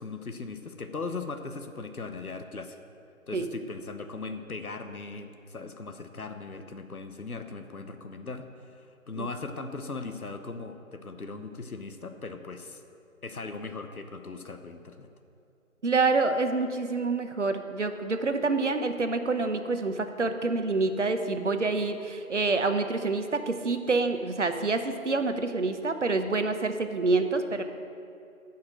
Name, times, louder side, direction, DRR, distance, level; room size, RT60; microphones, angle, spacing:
voice 1, 0.0-2.8 3.3-12.8 13.2-15.1, left 3 dB, 85° left, 7 dB, 1.0 m, -39 dB
voice 2, 15.8-27.6, right 3 dB, 55° right, 8 dB, 0.8 m, -27 dB
8.7 x 5.8 x 7.6 m, 2.5 s
figure-of-eight pair, 165°, 42 cm